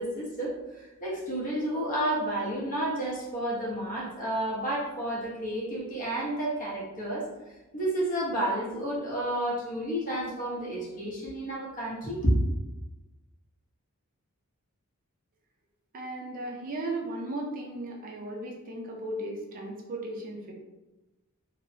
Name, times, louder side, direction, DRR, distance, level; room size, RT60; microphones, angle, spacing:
voice 1, 0.0-7.3 7.7-12.3, right 1 dB, 40° left, -5 dB, 0.9 m, -31 dB
voice 2, 15.9-20.5, right 1 dB, 40° right, 0 dB, 0.4 m, -36 dB
3.1 x 2.0 x 2.7 m, 1.1 s
head